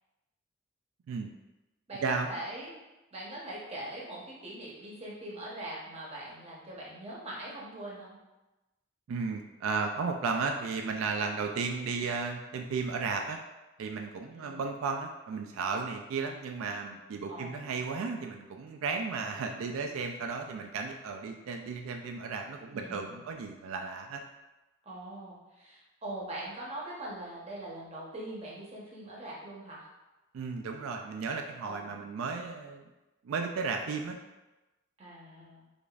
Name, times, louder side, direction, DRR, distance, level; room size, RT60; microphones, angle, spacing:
voice 1, 1.9-2.7 3.1-8.2 14.3-14.6 17.3-17.8 22.7-23.3 24.8-29.9 31.6-32.0 35.0-35.7, right 1 dB, 30° right, -5 dB, 0.8 m, -42 dB
voice 2, 9.1-13.4 13.8-24.2 30.3-32.9 33.2-34.2, right 4 dB, 90° right, 3 dB, 0.3 m, -34 dB
4.9 x 2.5 x 2.3 m, 1.1 s
head